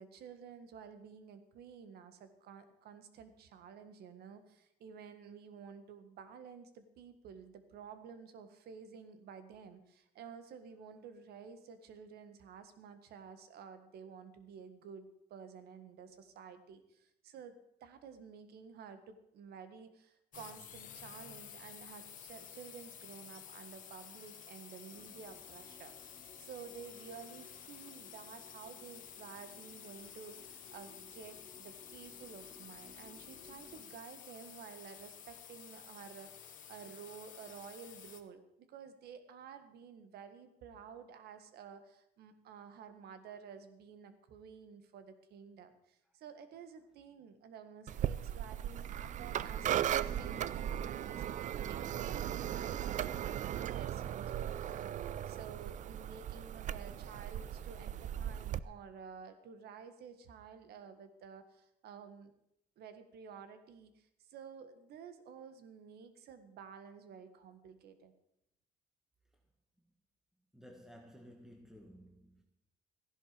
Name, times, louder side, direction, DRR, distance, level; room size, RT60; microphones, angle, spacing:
voice 1, 0.0-62.3 62.8-68.1, right 6 dB, 70° right, 1.7 m, -52 dB
sound 1, 20.3-38.2, left 9 dB, 50° left, 1.5 m, -52 dB
sound 2, 24.9-33.8, left 2 dB, 20° left, 2.4 m, -61 dB
sound 3, 47.9-58.6, right 10 dB, 45° right, 0.5 m, -37 dB
voice 2, 70.5-72.4, equal, ahead, 1.8 m, -55 dB
15.0 x 11.0 x 5.1 m
cardioid pair, 110°, 17 cm